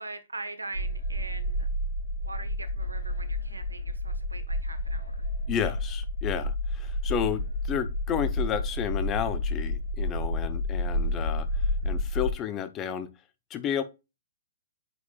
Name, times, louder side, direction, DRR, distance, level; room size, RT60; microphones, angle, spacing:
voice 1, 0.0-1.7 2.2-5.3, right 3 dB, 90° right, 1.1 m, -42 dB
sound 1, 0.7-12.3, left 1 dB, 85° left, 1.5 m, -30 dB
voice 2, 5.5-11.5 11.8-13.1 13.5-13.8, left 9 dB, 25° left, 0.8 m, -31 dB
8.2 x 4.7 x 2.4 m
figure-of-eight pair, 120°, 0 cm